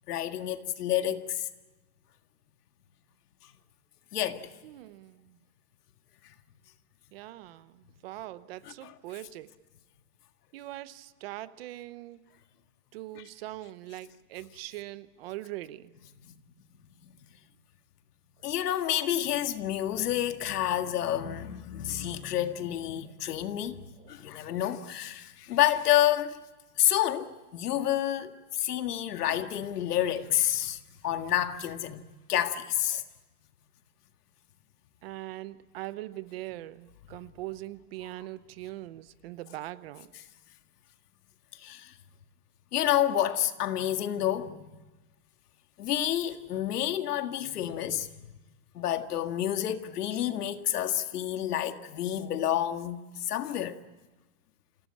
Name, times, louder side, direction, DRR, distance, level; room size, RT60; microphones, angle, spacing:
voice 1, 0.1-1.5 4.1-4.6 8.8-8.9 16.3-16.4 17.0-17.1 18.4-26.4 26.8-32.0 32.3-33.0 41.6-41.9 42.7-44.7 45.8-48.1 48.7-53.8, left 12 dB, 80° left, 1.9 m, -29 dB
voice 2, 4.6-5.4 7.1-9.5 10.5-12.2 12.9-15.9 20.7-20.9 22.1-22.3 23.0-23.1 24.0-24.1 35.0-40.1, right 16 dB, 40° right, 0.9 m, -42 dB
28.0 x 17.5 x 8.6 m
supercardioid pair, 165°, 46 cm